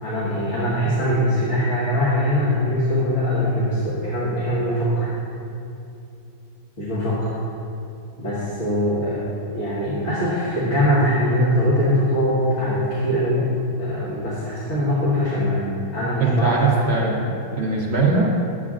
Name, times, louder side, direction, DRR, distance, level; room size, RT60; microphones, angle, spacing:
voice 1, 0.0-5.1 6.8-7.2 8.2-9.3 9.5-13.5 13.8-16.7, equal, 45° left, -10 dB, 1.5 m, -22 dB
voice 2, 16.2-18.5, right 3 dB, 65° right, -2 dB, 0.6 m, -21 dB
9.7 x 7.8 x 2.4 m, 2.7 s
omnidirectional pair, 1.9 m